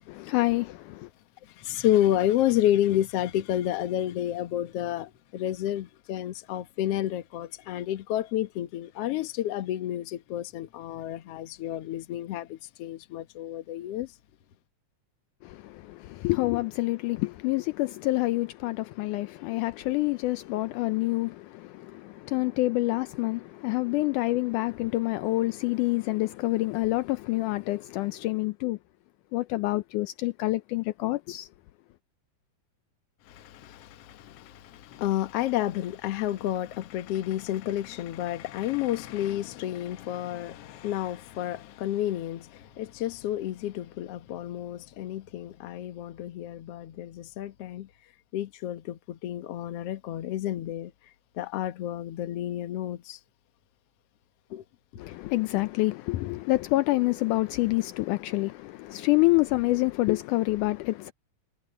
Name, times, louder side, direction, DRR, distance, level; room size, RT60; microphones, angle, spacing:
voice 1, 0.2-1.1 15.4-28.8 29.3-31.5 55.0-61.1, left 19 dB, 80° left, 2.0 m, -27 dB
voice 2, 1.4-14.1 33.3-47.9 48.3-50.9 51.4-53.2 54.5-54.6, left 12 dB, 60° left, 1.8 m, -30 dB
omnidirectional pair, 3.8 m